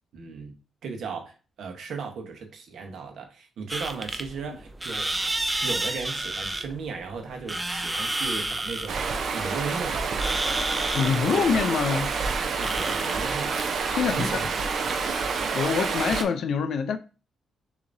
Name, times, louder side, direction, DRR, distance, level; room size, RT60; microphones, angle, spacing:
voice 1, 0.1-0.5 0.8-5.3 5.6-9.1 9.3-10.1 11.2-11.4 11.9-12.1 12.4-13.5 14.1-14.5 14.8-15.0, right 5 dB, 65° right, 1.1 m, -36 dB
sound 1, 3.7-15.5, right 1 dB, 10° right, 0.4 m, -32 dB
Stream, 8.9-16.2, right 5 dB, 50° right, 0.6 m, -28 dB
voice 2, 10.9-12.1 13.9-14.5 15.5-17.0, left 6 dB, 55° left, 0.5 m, -25 dB
6.8 x 2.8 x 2.6 m
cardioid pair, 165°, 0 cm